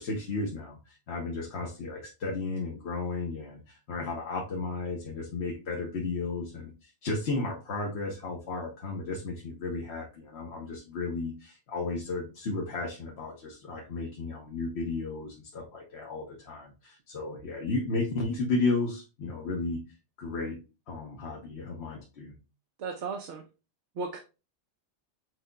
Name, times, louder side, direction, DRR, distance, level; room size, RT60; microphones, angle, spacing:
voice 1, 0.0-19.8 20.2-20.6 20.9-22.3, left 3 dB, 70° left, 1 dB, 1.1 m, -34 dB
voice 2, 22.8-23.4 24.0-24.2, right 4 dB, 90° right, 3 dB, 1.0 m, -35 dB
6.2 x 3.8 x 2.2 m, 0.30 s
omnidirectional pair, 1.2 m